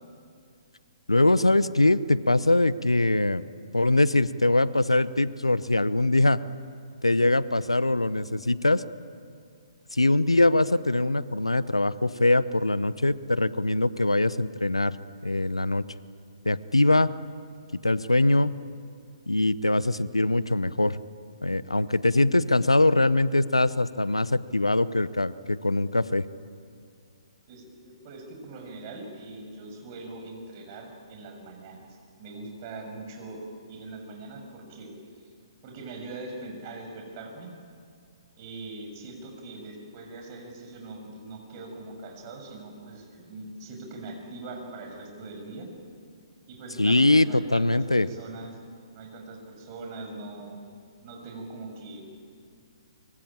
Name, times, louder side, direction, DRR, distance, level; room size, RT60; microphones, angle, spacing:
voice 1, 1.1-3.4 3.7-6.4 7.0-8.8 9.9-15.0 15.2-15.8 16.4-17.1 17.8-18.5 19.3-21.0 21.4-26.3 46.8-48.1, left 2 dB, 85° left, 17 dB, 0.9 m, -22 dB
voice 2, 27.5-31.9 32.2-34.9 35.6-37.5 38.4-45.7 46.5-48.5 48.9-50.6 51.0-52.1, right 2 dB, 35° right, 3 dB, 6.8 m, -41 dB
24.5 x 24.0 x 8.9 m, 2.3 s
figure-of-eight pair, 125°, 3 cm